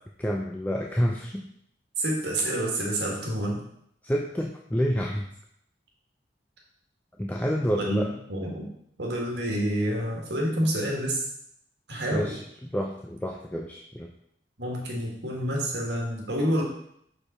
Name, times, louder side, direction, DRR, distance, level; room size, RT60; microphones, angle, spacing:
voice 1, 0.2-1.5 4.0-5.3 7.2-8.1 12.1-12.4 12.7-14.1, equal, 10° left, 0 dB, 0.4 m, -28 dB
voice 2, 2.0-3.6 7.8-8.7 9.0-11.3 11.9-12.3 14.6-16.6, right 1 dB, 75° right, -1 dB, 1.9 m, -28 dB
6.6 x 5.2 x 4.3 m, 0.72 s
head